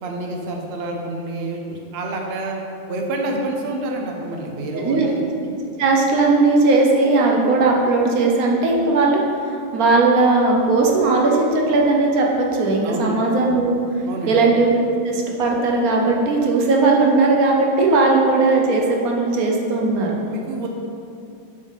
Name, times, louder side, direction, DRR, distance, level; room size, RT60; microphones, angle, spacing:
voice 1, 0.0-2.6 2.9-5.2 12.8-13.2 14.0-14.4 20.2-20.7, right 2 dB, 75° right, 1 dB, 0.5 m, -28 dB
voice 2, 4.7-5.1 5.8-13.7 14.3-20.2, right 3 dB, 60° right, -1 dB, 1.1 m, -18 dB
7.2 x 5.1 x 4.0 m, 2.5 s
omnidirectional pair, 2.1 m